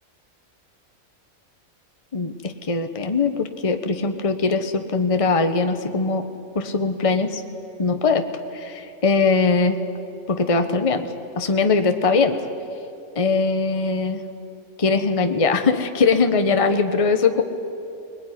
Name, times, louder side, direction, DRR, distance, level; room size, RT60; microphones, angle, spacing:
voice 1, 2.1-6.2 6.5-7.4 7.8-8.3 8.5-9.8 10.3-11.1 11.4-12.4 13.1-14.2 14.8-17.4, left 4 dB, 25° left, 7 dB, 1.1 m, -21 dB
21.0 x 21.0 x 9.9 m, 2.8 s
omnidirectional pair, 1.5 m